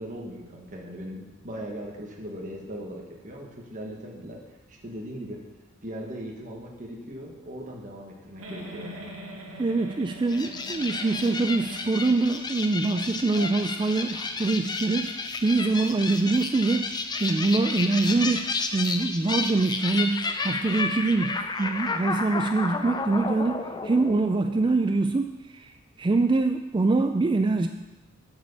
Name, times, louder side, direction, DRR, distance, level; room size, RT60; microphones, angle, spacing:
voice 1, 0.0-5.4 5.8-9.1, equal, 40° right, -1 dB, 1.5 m, -39 dB
Giggle, 8.4-12.6 13.0-13.1 13.3-13.5, right 1 dB, 85° right, 1.8 m, -42 dB
voice 2, 9.6-15.1 15.4-25.7 26.0-27.7, right 3 dB, 20° right, 7 dB, 0.3 m, -24 dB
sound 1, 10.3-24.9, left 4 dB, 20° left, 0.6 m, -32 dB
8.5 x 6.2 x 7.1 m, 1.1 s
head